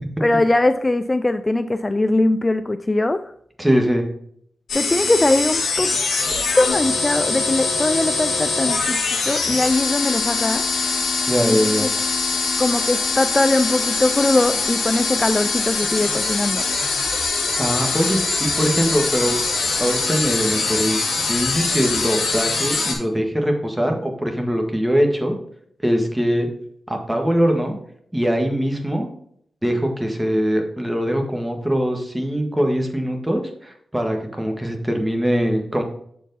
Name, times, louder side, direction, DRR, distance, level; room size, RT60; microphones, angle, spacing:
voice 1, 0.2-3.3 4.7-5.9 6.5-9.0 9.3-10.6 11.4-11.9 12.6-16.6, left 2 dB, 25° left, 10 dB, 0.3 m, -21 dB
voice 2, 3.6-4.0 11.3-11.9 17.6-19.4 19.8-21.0 21.3-25.4 25.8-26.5 26.9-27.7 28.1-29.1 29.6-35.8, equal, 15° right, 3 dB, 1.6 m, -22 dB
sound 1, 4.7-22.9, left 4 dB, 85° left, 1.7 m, -23 dB
7.0 x 4.6 x 4.0 m, 0.67 s
cardioid pair, 70°, 0 cm